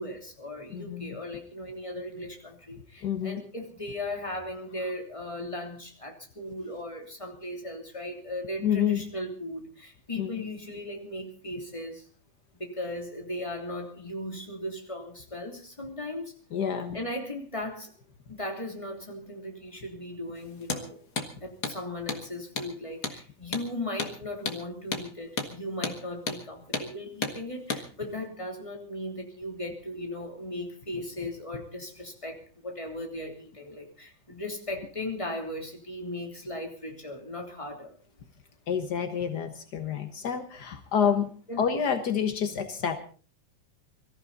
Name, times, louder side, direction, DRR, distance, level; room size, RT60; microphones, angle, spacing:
voice 1, 0.0-12.1 12.6-16.3 16.9-17.9 18.3-21.0 21.4-37.9 40.9-41.2 41.5-41.6, left 1 dB, 10° left, 2 dB, 2.7 m, -37 dB
voice 2, 0.7-1.2 3.0-3.4 8.6-9.0 10.2-10.3 16.5-17.0 38.7-41.3 41.6-43.0, left 8 dB, 85° left, 8 dB, 0.9 m, -28 dB
Hammer, 20.6-20.8 21.2-21.3 21.6-21.8 22.1-22.2 22.6-22.7 23.0-23.2 23.5-23.7 24.0-24.1 24.5-24.6 24.9-25.1 25.4-25.5 25.8-26.0 26.3-26.4 26.7-26.9 27.2-27.4 27.7-27.8, left 4 dB, 40° left, 1.7 m, -32 dB
23.5 x 14.5 x 4.1 m, 0.38 s
omnidirectional pair, 3.7 m